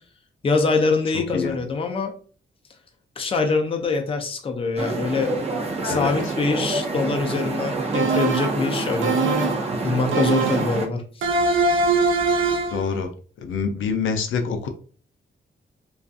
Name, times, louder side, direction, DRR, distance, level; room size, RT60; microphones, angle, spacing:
voice 1, 0.4-2.1 3.2-5.3 5.8-9.5 9.8-11.3, left 3 dB, 30° left, 4 dB, 0.4 m, -24 dB
sound 1, 4.8-10.9, right 2 dB, 35° right, 0.5 m, -27 dB
voice 2, 5.8-6.1 12.7-13.1 13.4-14.7, left 5 dB, 85° left, 6 dB, 0.4 m, -26 dB
sound 2, 7.9-8.6 9.0-9.7 10.1-10.8 11.2-12.8, right 4 dB, 90° right, 0.4 m, -22 dB
2.5 x 2.3 x 2.4 m, 0.42 s
wide cardioid pair, 140°, 20 cm